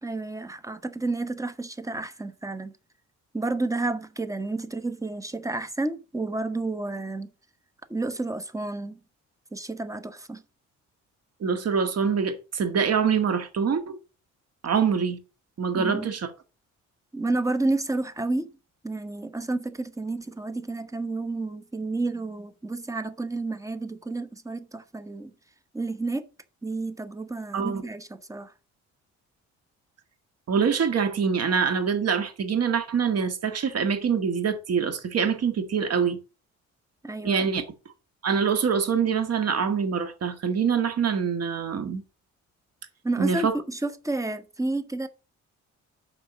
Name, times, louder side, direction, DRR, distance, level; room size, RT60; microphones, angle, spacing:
voice 1, 0.0-2.7 3.3-7.3 7.9-9.0 9.5-10.4 15.7-16.1 17.1-18.5 18.8-25.3 25.7-26.3 26.6-28.5 37.0-37.5 43.0-45.1, right 2 dB, 10° right, 1.0 m, -30 dB
voice 2, 11.4-14.0 14.6-15.2 15.6-16.3 27.5-27.8 30.5-36.2 37.2-37.6 38.2-42.0 43.2-43.5, right 6 dB, 55° right, 1.7 m, -25 dB
6.8 x 5.4 x 6.2 m
cardioid pair, 90°, 30 cm